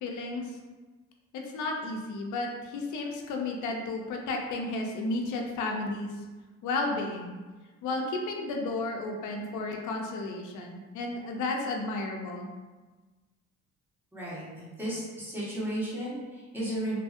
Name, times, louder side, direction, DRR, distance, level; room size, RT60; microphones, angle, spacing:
voice 1, 0.0-0.5 1.3-6.1 6.6-7.4 7.8-12.5, left 2 dB, 75° left, 1 dB, 0.5 m, -33 dB
voice 2, 14.1-17.0, right 1 dB, 5° right, -9 dB, 1.2 m, -34 dB
2.7 x 2.6 x 2.4 m, 1.3 s
cardioid pair, 90°, 30 cm